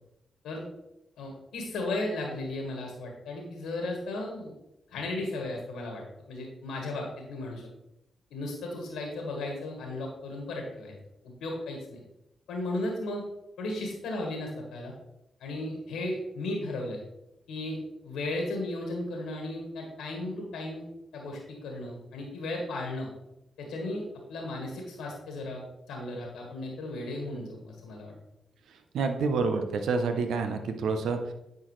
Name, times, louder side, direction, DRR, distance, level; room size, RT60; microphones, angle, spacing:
voice 1, 1.2-4.5 4.9-7.6 8.3-10.9 11.4-12.0 12.5-13.2 13.6-14.9 15.4-17.0 17.5-20.8 21.1-23.1 23.6-24.0 24.3-25.6 25.9-28.1, left 2 dB, 85° left, 0 dB, 1.5 m, -35 dB
voice 2, 28.9-31.3, right 4 dB, 75° right, 7 dB, 0.7 m, -28 dB
9.6 x 4.6 x 3.2 m, 0.86 s
supercardioid pair, 40°, 0 cm